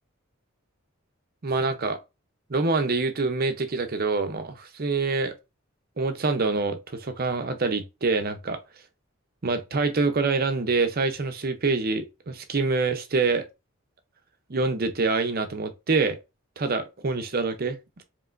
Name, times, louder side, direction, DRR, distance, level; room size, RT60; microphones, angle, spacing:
voice 1, 1.4-2.0 2.5-5.3 6.0-8.6 9.4-13.4 14.5-16.2 16.6-18.0, right 3 dB, 45° right, 0.7 m, -26 dB
4.7 x 3.2 x 2.5 m
head